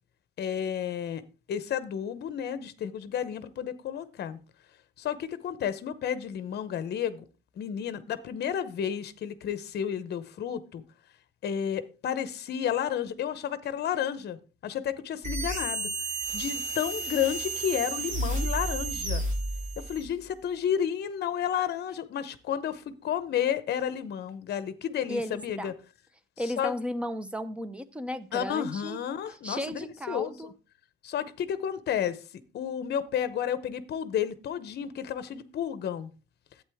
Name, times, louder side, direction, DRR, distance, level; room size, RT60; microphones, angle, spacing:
voice 1, 0.4-1.2 1.5-4.4 5.0-7.2 7.6-10.8 11.4-19.2 19.8-25.7 26.6-26.7 28.3-29.8 30.1-30.5 31.0-32.2 32.5-36.1, left 9 dB, 50° left, 0.8 m, -31 dB
sound 1, 15.2-20.1, right 2 dB, 35° right, 2.3 m, -32 dB
voice 2, 25.1-25.7 26.4-29.0 29.4-30.5, equal, 5° right, 0.5 m, -34 dB
11.5 x 8.5 x 3.5 m
cardioid pair, 180°, 21 cm